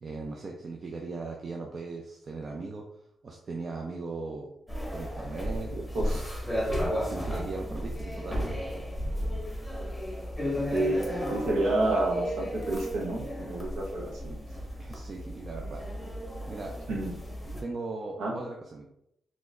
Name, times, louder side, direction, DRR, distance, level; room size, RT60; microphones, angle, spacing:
voice 1, 0.0-2.8 3.2-4.5 4.9-5.8 6.1-6.3 7.0-8.5 14.8-15.9 16.5-16.7 17.6-18.9, right 3 dB, 45° right, 1 dB, 0.5 m, -38 dB
sound 1, 4.7-17.6, equal, ahead, 1.1 m, -34 dB
voice 2, 5.7-6.2 10.7-14.4 16.9-17.1 18.2-18.3, right 2 dB, 80° right, 0 dB, 0.9 m, -29 dB
4.0 x 2.9 x 2.5 m, 0.76 s
cardioid pair, 95°, 0 cm